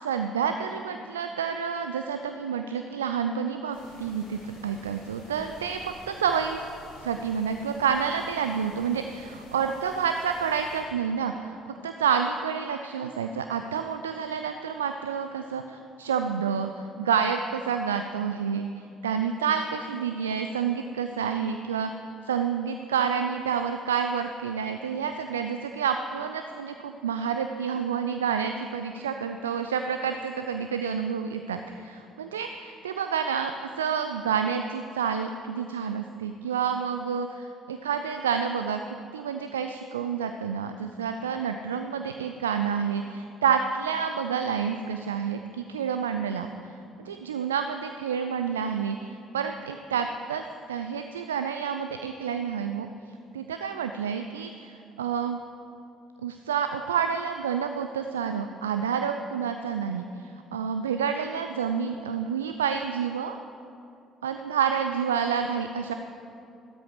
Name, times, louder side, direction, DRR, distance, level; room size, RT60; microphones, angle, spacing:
voice 1, 0.0-6.6 7.0-16.7 17.0-21.9 22.2-38.8 39.1-46.7 47.0-50.4 50.7-52.9 53.3-55.4 56.2-63.4 64.2-65.9, right 7 dB, 75° right, 7 dB, 0.4 m, -29 dB
sound 1, 3.7-10.8, left 1 dB, 70° left, 2.9 m, -50 dB
13.0 x 12.5 x 5.0 m, 2.7 s
figure-of-eight pair, 50°, 0 cm